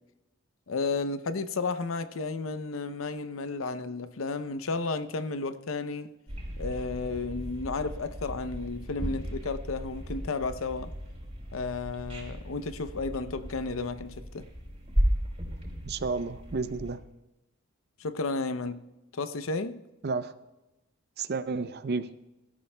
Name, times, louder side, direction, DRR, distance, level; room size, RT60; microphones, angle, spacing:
voice 1, 0.7-6.1 6.6-10.9 11.5-14.4 18.0-18.8 19.1-19.8, left 3 dB, 75° left, 0.7 m, -33 dB
sound 1, 6.3-16.9, equal, 30° right, 3.7 m, -35 dB
voice 2, 15.8-17.0 20.0-20.3 21.2-22.1, right 4 dB, 55° right, 0.6 m, -31 dB
21.5 x 13.0 x 2.2 m
head